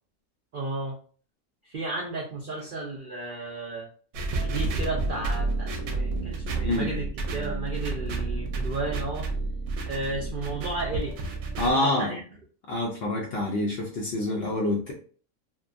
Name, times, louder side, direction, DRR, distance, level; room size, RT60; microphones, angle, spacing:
voice 1, 0.5-1.0 1.6-3.9 4.4-7.1 7.3-9.3 9.9-11.2 11.7-12.2, right 2 dB, 80° right, -2 dB, 0.4 m, -33 dB
sound 1, 4.1-11.7, right 3 dB, 65° right, 0.8 m, -30 dB
voice 2, 11.6-12.2 12.7-14.9, left 1 dB, 75° left, -1 dB, 0.5 m, -27 dB
2.7 x 2.2 x 2.4 m, 0.42 s
omnidirectional pair, 1.6 m